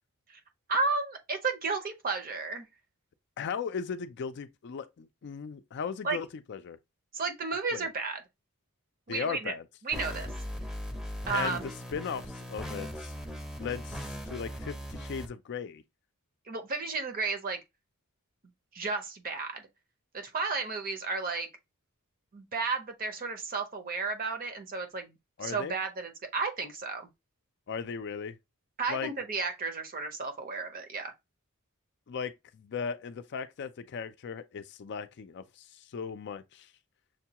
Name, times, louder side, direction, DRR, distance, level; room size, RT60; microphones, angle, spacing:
voice 1, 0.7-2.7 6.0-6.2 7.1-8.2 9.1-9.5 9.8-10.3 11.3-11.7 16.5-17.6 18.7-19.7 20.1-21.5 22.3-25.1 25.4-27.1 28.8-31.1, right 4 dB, 40° right, 0.7 m, -33 dB
voice 2, 3.4-6.8 7.7-7.9 9.1-9.6 11.3-13.1 13.6-15.8 25.4-25.7 27.7-28.4 28.9-29.1 32.1-36.7, left 6 dB, 55° left, 0.4 m, -37 dB
sound 1, 9.9-15.3, equal, ahead, 0.6 m, -39 dB
6.4 x 2.3 x 2.8 m
head